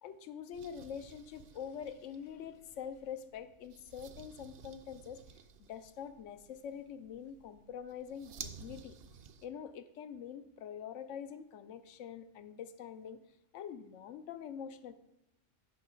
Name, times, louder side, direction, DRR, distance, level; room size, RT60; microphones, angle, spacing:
voice 1, 0.0-5.2 5.6-9.0 9.4-13.2 13.5-14.9, left 8 dB, 85° left, 11 dB, 0.9 m, -45 dB
sound 1, 0.5-9.5, right 6 dB, 60° right, 0.8 m, -54 dB
6.9 x 5.5 x 5.0 m, 0.88 s
omnidirectional pair, 1.2 m